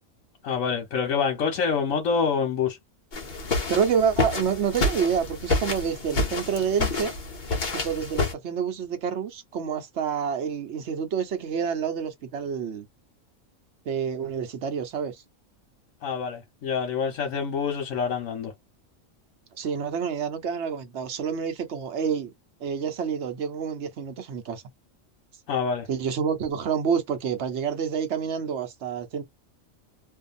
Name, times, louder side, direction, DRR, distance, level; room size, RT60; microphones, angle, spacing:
voice 1, 0.4-2.8 16.0-18.5 25.5-25.9, left 6 dB, 80° left, 1.2 m, -26 dB
sound 1, 3.1-8.3, left 2 dB, 40° left, 0.9 m, -28 dB
voice 2, 3.7-7.1 7.7-12.8 13.9-15.2 19.6-22.3 22.6-24.6 25.9-29.2, right 7 dB, 60° right, 1.0 m, -28 dB
2.7 x 2.4 x 2.5 m
omnidirectional pair, 1.4 m